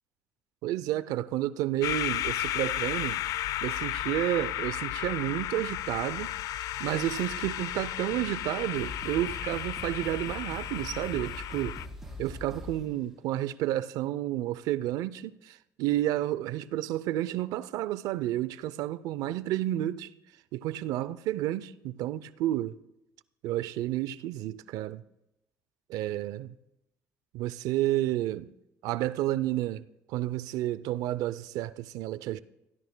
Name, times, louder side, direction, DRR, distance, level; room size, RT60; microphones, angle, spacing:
voice 1, 0.6-3.2 3.6-6.4 6.8-11.8 12.2-20.1 20.5-22.8 23.4-25.0 25.9-26.6 27.3-28.5 28.8-32.4, right 14 dB, 80° right, 0.5 m, -31 dB
sound 1, 1.8-11.9, left 12 dB, 75° left, 0.5 m, -34 dB
sound 2, 7.0-7.6 8.4-8.5 8.7-13.0, left 1 dB, 5° right, 4.8 m, -42 dB
25.0 x 16.0 x 2.2 m
cardioid pair, 90°, 6 cm